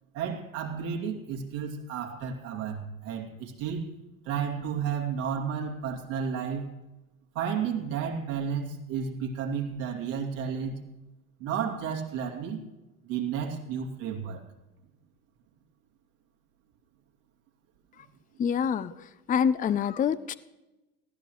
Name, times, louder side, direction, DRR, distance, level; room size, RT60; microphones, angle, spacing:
voice 1, 0.1-3.9 4.2-6.7 7.3-10.8 11.4-12.6 13.0-14.4, right 7 dB, 70° right, 0 dB, 2.8 m, -32 dB
voice 2, 18.4-20.4, left 7 dB, 20° left, 15 dB, 0.5 m, -27 dB
19.5 x 15.0 x 3.2 m, 1.0 s
hypercardioid pair, 75°, 40 cm